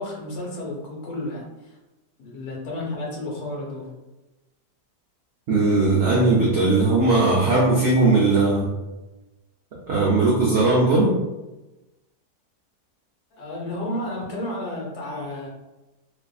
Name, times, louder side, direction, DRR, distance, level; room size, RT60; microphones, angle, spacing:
voice 1, 0.0-1.4 2.2-3.9 13.4-15.5, left 1 dB, 70° left, -2 dB, 1.2 m, -31 dB
voice 2, 5.5-8.7 9.9-11.2, right 3 dB, 75° right, -4 dB, 0.6 m, -18 dB
2.6 x 2.4 x 2.3 m, 1.1 s
omnidirectional pair, 1.8 m